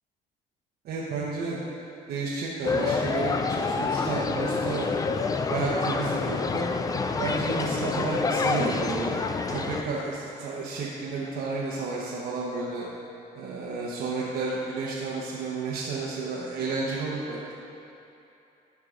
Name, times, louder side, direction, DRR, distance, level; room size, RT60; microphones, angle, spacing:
voice 1, 0.8-1.6 2.1-5.1 5.5-6.6 7.2-9.1 9.5-12.9 13.3-17.4, right 4 dB, 70° right, -5 dB, 1.0 m, -31 dB
sound 1, 2.6-9.8, left 4 dB, 20° left, 0.4 m, -27 dB
12.0 x 4.7 x 3.7 m, 2.8 s
cardioid pair, 110°, 17 cm